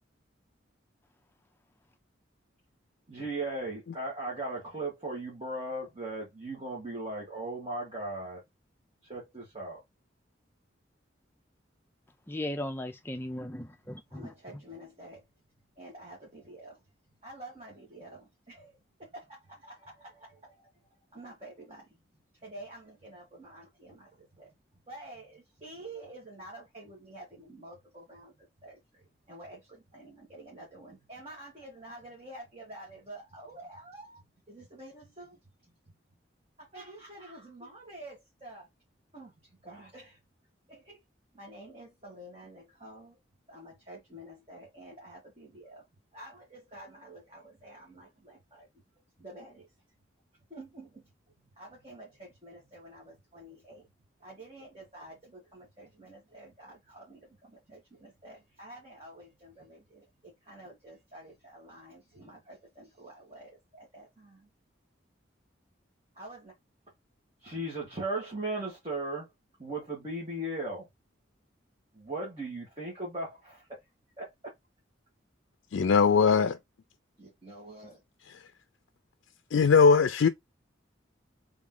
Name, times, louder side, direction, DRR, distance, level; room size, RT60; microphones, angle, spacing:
voice 1, 3.1-8.4 9.0-9.8 14.1-15.2 15.8-16.8 17.2-20.7 21.1-21.8 22.4-24.5 24.9-35.4 36.6-38.7 39.1-39.3 39.6-40.2 40.7-41.0 41.3-43.2 43.5-45.8 46.1-48.7 49.2-49.7 50.5-51.0 51.6-53.9 54.2-64.5 66.1-66.5 67.4-69.3 69.6-70.9 71.9-73.8 74.2-74.5 77.2-78.0, right 2 dB, 30° right, 1.6 m, -42 dB
voice 2, 12.3-14.3, left 1 dB, 10° left, 0.4 m, -37 dB
voice 3, 75.7-76.6 79.5-80.3, left 5 dB, 75° left, 0.4 m, -20 dB
3.6 x 3.1 x 3.7 m
head